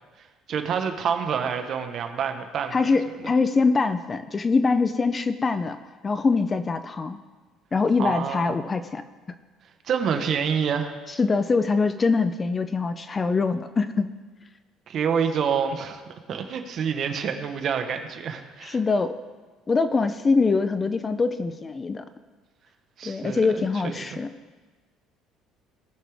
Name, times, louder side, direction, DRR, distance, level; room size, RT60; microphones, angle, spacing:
voice 1, 0.5-2.8 3.2-3.3 8.0-8.5 9.8-11.0 14.9-16.0 16.3-18.8 23.0-24.0, right 7 dB, 45° right, 6 dB, 1.1 m, -27 dB
voice 2, 2.7-5.8 6.0-7.2 7.7-9.0 11.2-14.1 18.6-19.2 19.7-22.0 23.0-24.3, left 4 dB, 20° left, 11 dB, 0.4 m, -23 dB
19.5 x 6.6 x 3.5 m, 1.4 s
cardioid pair, 140°, 0 cm